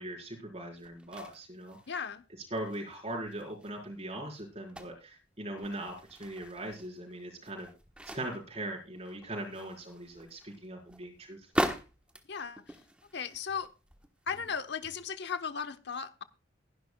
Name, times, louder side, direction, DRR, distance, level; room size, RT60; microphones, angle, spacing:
voice 1, 0.0-1.8 2.5-7.7 8.1-11.4, right 1 dB, 35° right, 4.5 m, -40 dB
sound 1, 0.8-2.1 2.5-5.1 5.5-8.5 9.0-14.6 15.1-15.2, equal, 5° right, 1.2 m, -41 dB
voice 2, 1.9-2.2 12.3-12.7 13.1-13.7 14.3-16.2, left 6 dB, 55° left, 1.2 m, -36 dB
21.5 x 11.0 x 2.3 m
head